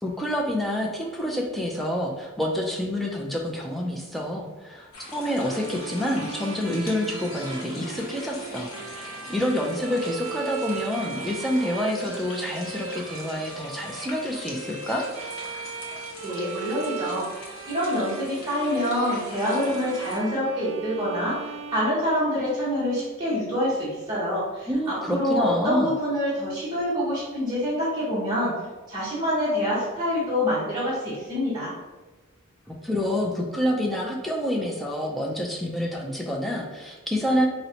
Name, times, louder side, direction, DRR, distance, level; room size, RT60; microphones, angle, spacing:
voice 1, 0.0-15.1 24.7-25.9 32.7-37.5, left 1 dB, ahead, -1 dB, 0.3 m, -28 dB
sound 1, 4.9-20.2, left 2 dB, 85° left, 0.7 m, -42 dB
Bowed string instrument, 5.4-22.6, right 6 dB, 85° right, 0.3 m, -38 dB
voice 2, 16.2-28.5 28.9-31.7, equal, 20° right, -10 dB, 0.8 m, -26 dB
4.0 x 2.1 x 2.7 m, 1.2 s
head